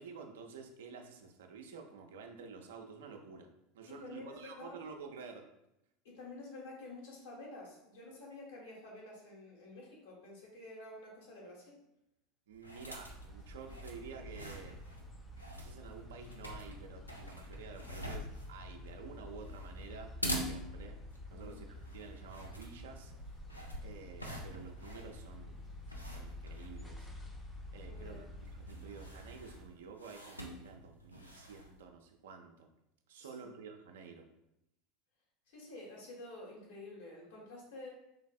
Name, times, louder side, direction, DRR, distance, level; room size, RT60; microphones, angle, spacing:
voice 1, 0.0-3.5 3.7-5.5 12.5-14.8 15.6-21.0 21.3-23.1 23.8-25.6 26.1-27.1 27.7-28.3 28.7-32.7 33.1-34.3, right 5 dB, 65° right, 3 dB, 0.4 m, -50 dB
voice 2, 3.9-4.7 6.0-11.8 21.3-21.6 27.9-28.3 33.2-33.5 35.5-37.9, left 2 dB, 65° left, -3 dB, 1.3 m, -50 dB
sound 1, 12.5-31.8, equal, 90° left, 0.4 m, -46 dB
sound 2, 13.0-29.6, left 1 dB, 20° left, 0.6 m, -49 dB
3.9 x 3.2 x 2.3 m, 0.85 s
figure-of-eight pair, 75°, 0 cm